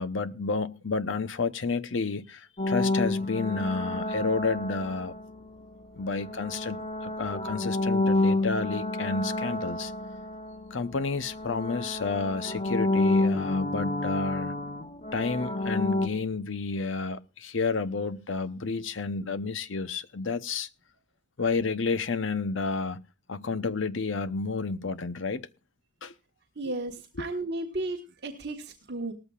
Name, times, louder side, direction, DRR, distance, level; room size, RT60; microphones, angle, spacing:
voice 1, 0.0-5.2 6.0-9.9 10.7-14.5 15.1-20.7 21.4-23.0 23.3-25.5 26.0-26.1 27.2-27.3, left 4 dB, 70° left, 0.9 m, -30 dB
sound 1, 2.6-5.5 6.2-11.0 11.2-16.1, left 2 dB, 30° left, 0.9 m, -29 dB
voice 2, 26.5-29.1, right 2 dB, 55° right, 1.6 m, -34 dB
18.5 x 14.0 x 2.5 m
head